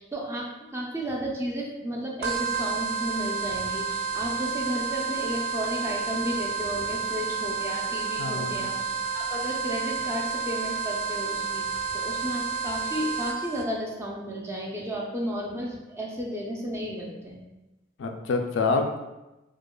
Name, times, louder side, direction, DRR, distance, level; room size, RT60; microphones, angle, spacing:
voice 1, 0.0-17.4, equal, 15° right, -2 dB, 0.5 m, -33 dB
sound 1, 2.2-13.6, right 5 dB, 80° right, 0.5 m, -30 dB
voice 2, 8.2-8.7 18.0-19.0, left 3 dB, 65° left, 5 dB, 0.3 m, -27 dB
4.8 x 2.3 x 2.3 m, 1.0 s
head